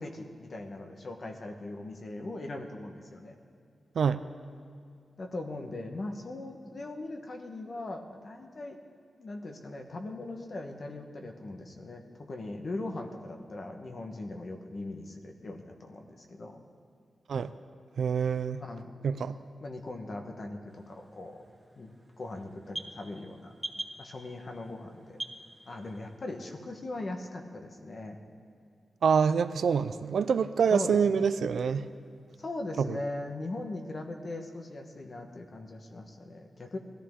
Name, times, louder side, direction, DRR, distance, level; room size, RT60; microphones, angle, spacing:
voice 1, 0.0-3.4 5.2-8.8 9.2-16.6 18.6-18.9 19.6-21.4 21.8-23.5 24.0-25.2 25.7-28.2 30.7-31.3 32.4-36.8, left 2 dB, 40° left, 3 dB, 1.2 m, -40 dB
voice 2, 18.0-18.6 19.0-19.4 29.0-31.9 32.8-33.0, right 6 dB, 75° right, 13 dB, 0.4 m, -26 dB
sound 1, 20.7-26.2, right 1 dB, 10° right, 0.7 m, -45 dB
20.0 x 14.0 x 3.7 m, 2.3 s
wide cardioid pair, 170°, 0 cm